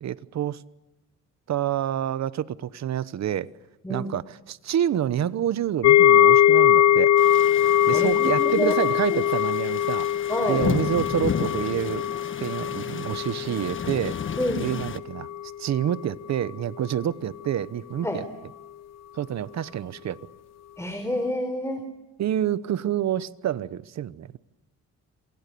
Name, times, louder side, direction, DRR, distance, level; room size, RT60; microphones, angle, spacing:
voice 1, 0.0-0.6 1.5-3.5 3.9-7.1 7.9-10.1 10.5-12.1 12.4-14.2 14.6-15.3 15.6-18.2 19.1-20.2 22.2-24.4, right 10 dB, 65° right, 1.1 m, -28 dB
sound 1, 5.8-14.9 15.2-15.5 15.9-16.0, left 11 dB, 60° left, 0.9 m, -21 dB
rain thunder ambient, 7.2-15.0, left 7 dB, 40° left, 1.3 m, -33 dB
voice 2, 7.9-8.8 9.1-9.2 10.3-10.6 14.4-14.7 18.0-18.2 20.8-21.9, left 1 dB, 10° left, 4.1 m, -28 dB
28.5 x 26.5 x 7.0 m
cardioid pair, 90°, 30 cm